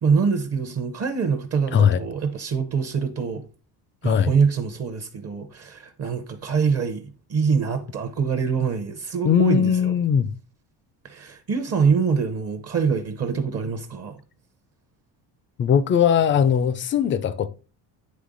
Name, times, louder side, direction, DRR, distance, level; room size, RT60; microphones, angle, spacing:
voice 1, 0.0-3.5 4.0-7.0 7.3-9.9 11.0-14.2, right 5 dB, 35° right, 0.7 m, -24 dB
voice 2, 9.2-10.3 15.6-17.5, left 8 dB, 30° left, 0.4 m, -19 dB
9.6 x 3.3 x 3.8 m
cardioid pair, 155°, 41 cm